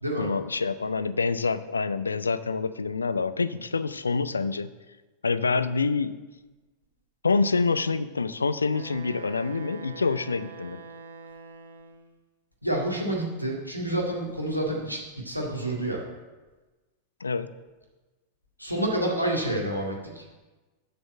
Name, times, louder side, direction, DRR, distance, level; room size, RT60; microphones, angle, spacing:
voice 1, 0.2-4.7 5.2-6.1 7.2-10.8 17.2-17.5, left 4 dB, 75° left, 15 dB, 0.4 m, -26 dB
Wind instrument woodwind instrument, 8.7-12.2, right 4 dB, 75° right, 1.0 m, -44 dB
voice 2, 12.6-16.0 18.6-20.2, right 1 dB, 90° right, -2 dB, 2.1 m, -28 dB
7.0 x 6.8 x 7.7 m, 1.2 s
figure-of-eight pair, 90°, 0 cm